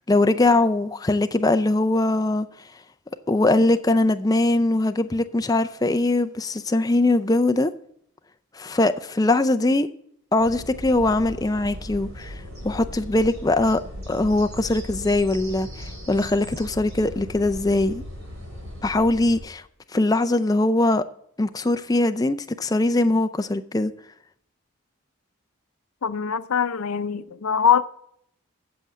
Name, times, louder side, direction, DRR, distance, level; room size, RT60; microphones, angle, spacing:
voice 1, 0.1-2.5 3.3-7.7 8.5-9.9 10.3-12.4 12.6-13.8 14.1-18.0 18.8-19.6 19.9-21.0 21.4-23.9, left 2 dB, 15° left, 0.4 m, -21 dB
sound 1, 10.4-19.4, equal, 75° right, 4.0 m, -38 dB
voice 2, 26.0-27.8, left 7 dB, 85° left, 0.6 m, -22 dB
7.8 x 7.5 x 8.2 m
head